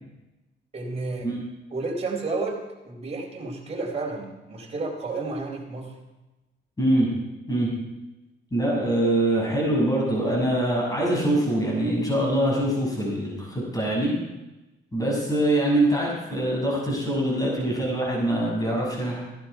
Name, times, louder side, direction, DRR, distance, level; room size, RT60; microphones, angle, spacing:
voice 1, 0.7-1.3 1.7-5.9, right 3 dB, 30° right, -1 dB, 4.0 m, -31 dB
voice 2, 6.8-7.1 7.5-7.7 8.5-14.1 14.9-19.2, right 1 dB, 20° left, -3 dB, 6.5 m, -24 dB
16.5 x 11.5 x 4.7 m, 1.0 s
cardioid pair, 90°, 20 cm